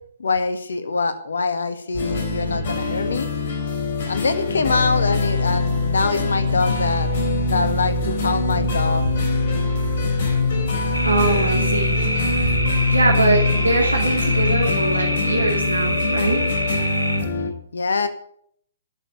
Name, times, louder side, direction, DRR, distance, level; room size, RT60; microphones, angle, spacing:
voice 1, 0.2-3.3 4.1-7.1 7.5-9.0 17.7-18.1, left 4 dB, 65° left, 10 dB, 1.8 m, -24 dB
sound 1, 1.9-17.5, left 3 dB, 45° left, 4.0 m, -23 dB
sound 2, 10.9-17.2, equal, 90° left, 2.9 m, -26 dB
voice 2, 11.0-12.0 12.9-16.4, right 2 dB, 80° right, -1 dB, 2.8 m, -22 dB
13.0 x 7.1 x 9.5 m, 0.66 s
figure-of-eight pair, 125°, 0 cm